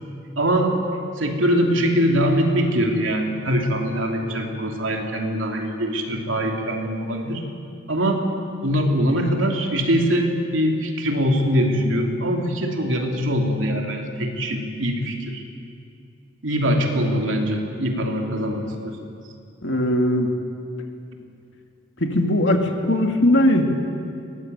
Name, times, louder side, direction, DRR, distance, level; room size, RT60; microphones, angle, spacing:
voice 1, 0.4-0.7 1.2-7.4 7.9-8.2 8.6-15.4 16.4-19.0, equal, 75° right, 2 dB, 3.1 m, -22 dB
voice 2, 19.6-20.3 22.0-23.6, left 1 dB, 65° left, 3 dB, 2.5 m, -19 dB
22.5 x 19.0 x 9.4 m, 2.5 s
head